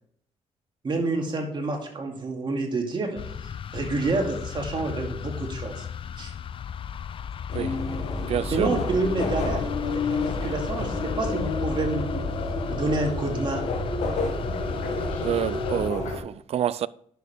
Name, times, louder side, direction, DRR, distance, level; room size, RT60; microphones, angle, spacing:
voice 1, 0.8-3.4 3.7-5.8 6.2-6.3 8.5-12.3 12.7-13.6, right 2 dB, 40° right, 2.4 m, -28 dB
sound 1, 3.2-15.9, left 8 dB, 45° left, 0.4 m, -36 dB
sound 2, 7.5-16.2, left 3 dB, 85° left, 1.9 m, -30 dB
sound 3, 7.8-15.2, right 2 dB, 10° right, 2.8 m, -38 dB
voice 2, 8.2-8.7 15.2-16.9, right 10 dB, 60° right, 0.4 m, -28 dB
10.5 x 6.8 x 3.5 m
cardioid pair, 90°, 12 cm